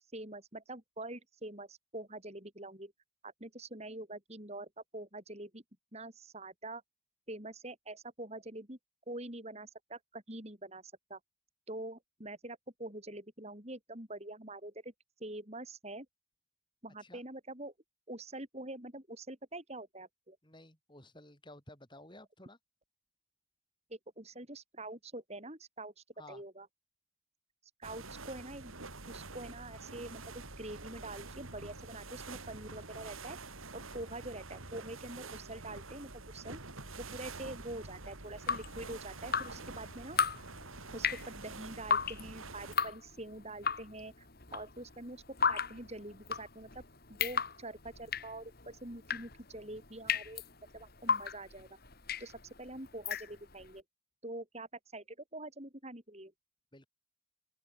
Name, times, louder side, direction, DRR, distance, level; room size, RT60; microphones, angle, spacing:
voice 1, 0.1-2.9 3.2-5.6 5.9-6.8 7.3-8.8 9.1-11.2 11.7-14.9 15.2-16.1 16.8-17.7 18.1-20.4 23.9-26.7 27.8-28.7 29.1-33.4 33.7-36.6 37.0-40.2 40.9-46.8 47.1-50.4 50.7-51.8 52.2-53.8 54.2-56.3, right 2 dB, 30° right, 4.4 m, -45 dB
voice 2, 20.4-22.6 26.2-26.4 34.0-34.1 56.7-56.9, left 1 dB, 20° left, 7.3 m, -54 dB
sound 1, 27.8-42.8, right 3 dB, 75° right, 4.3 m, -47 dB
Drip, 38.2-53.7, left 6 dB, 45° left, 3.1 m, -36 dB
open air
head